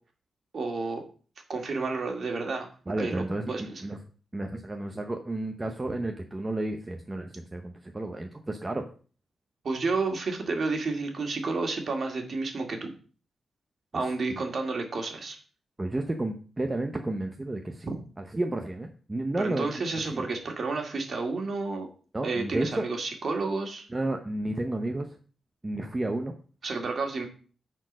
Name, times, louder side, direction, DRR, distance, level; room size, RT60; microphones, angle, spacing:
voice 1, 0.5-1.0 1.5-2.7 3.0-3.8 9.6-12.9 13.9-15.4 19.4-21.9 22.2-23.9 26.6-27.3, right 3 dB, 45° right, 3 dB, 2.1 m, -31 dB
voice 2, 2.9-4.0 4.3-8.8 13.9-14.0 15.8-17.9 18.3-19.7 20.0-20.3 22.1-22.9 23.9-25.1 25.6-26.3, right 2 dB, 15° right, 4 dB, 0.7 m, -31 dB
10.0 x 4.5 x 6.2 m, 0.39 s
wide cardioid pair, 165°, 0 cm